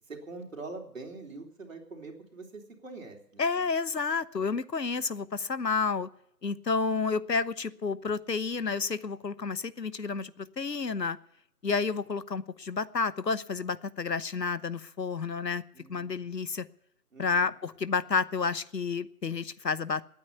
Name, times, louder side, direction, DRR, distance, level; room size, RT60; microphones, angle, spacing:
voice 1, 0.1-3.7 11.6-11.8 15.7-16.4 17.1-17.5, right 3 dB, 50° right, 2 dB, 3.8 m, -44 dB
voice 2, 3.4-6.1 6.4-11.2 11.6-15.6 15.9-16.7 17.2-20.0, left 5 dB, 80° left, 16 dB, 1.0 m, -30 dB
18.5 x 9.5 x 7.0 m, 0.73 s
figure-of-eight pair, 165°, 49 cm